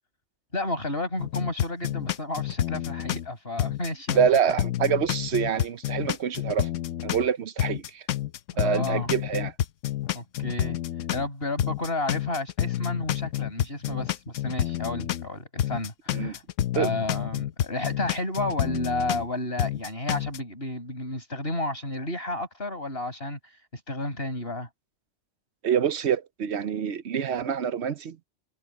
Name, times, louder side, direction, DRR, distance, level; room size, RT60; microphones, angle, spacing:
voice 1, 0.5-4.2 4.5-4.6 8.5-9.1 10.1-10.8 11.1-16.4 16.7-23.4 23.7-24.7, left 2 dB, 50° left, 7.4 m, -32 dB
sound 1, 1.2-3.3 3.6-7.3 7.6-11.3 11.6-15.3 15.6-19.3 19.6-20.4, left 12 dB, 85° left, 1.1 m, -29 dB
voice 2, 4.1-6.7 7.0-8.0 8.6-9.5 16.1-16.4 16.8-16.9 25.6-28.2, right 7 dB, 65° right, 1.0 m, -26 dB
omnidirectional pair, 1.3 m